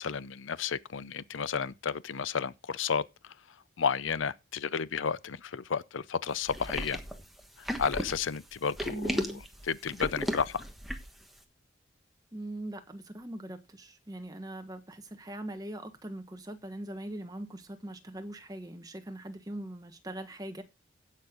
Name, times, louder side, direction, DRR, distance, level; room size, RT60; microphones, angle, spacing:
voice 1, 0.0-3.0 3.8-7.0 7.6-10.6, left 6 dB, 80° left, 0.6 m, -32 dB
sound 1, 6.5-11.2, equal, ahead, 1.3 m, -35 dB
voice 2, 8.9-9.4 12.3-20.6, right 1 dB, 20° right, 1.4 m, -41 dB
16.5 x 6.5 x 3.8 m
head